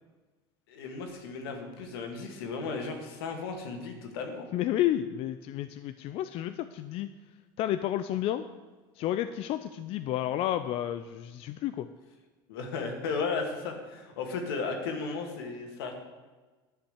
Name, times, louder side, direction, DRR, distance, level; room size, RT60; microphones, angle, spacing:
voice 1, 0.7-4.5 12.5-15.9, left 4 dB, 85° left, 4 dB, 2.0 m, -35 dB
voice 2, 4.5-7.1 7.6-8.4 9.0-11.9, left 12 dB, 50° left, 10 dB, 0.5 m, -31 dB
10.5 x 5.7 x 8.0 m, 1.3 s
supercardioid pair, 110°, 12 cm